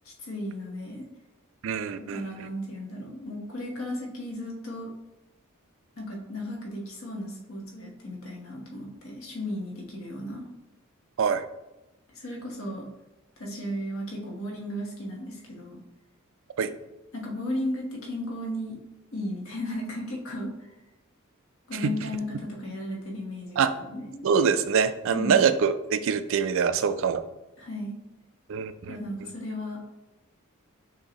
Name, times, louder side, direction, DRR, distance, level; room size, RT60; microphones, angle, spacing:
voice 1, 0.0-1.0 2.1-4.9 6.0-10.4 12.1-12.9 13.4-15.8 17.1-18.8 19.1-20.5 21.7-24.2 25.1-25.4 27.6-27.9 28.9-29.8, left 1 dB, 65° left, -2 dB, 1.2 m, -35 dB
voice 2, 1.6-2.2 11.2-11.4 16.6-16.7 21.8-21.9 23.6-23.7 24.2-27.2 28.5-29.3, right 6 dB, 60° right, 11 dB, 0.3 m, -24 dB
6.5 x 2.7 x 2.9 m, 0.98 s
head